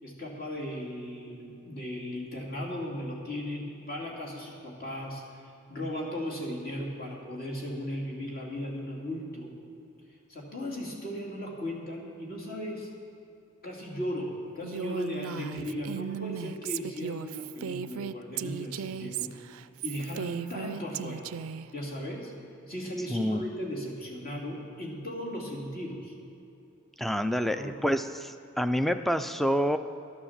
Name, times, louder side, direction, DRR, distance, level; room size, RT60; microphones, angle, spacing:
voice 1, 0.0-9.5 10.3-12.9 13.6-19.3 19.8-21.3 21.7-22.3 22.7-26.1 27.5-27.7, equal, 45° left, -3 dB, 2.7 m, -36 dB
Female speech woman speaking, 14.6-21.7, right 8 dB, 75° right, 0.4 m, -36 dB
voice 2, 23.1-23.4 27.0-29.8, equal, ahead, 10 dB, 0.3 m, -27 dB
12.0 x 9.7 x 7.3 m, 2.7 s
head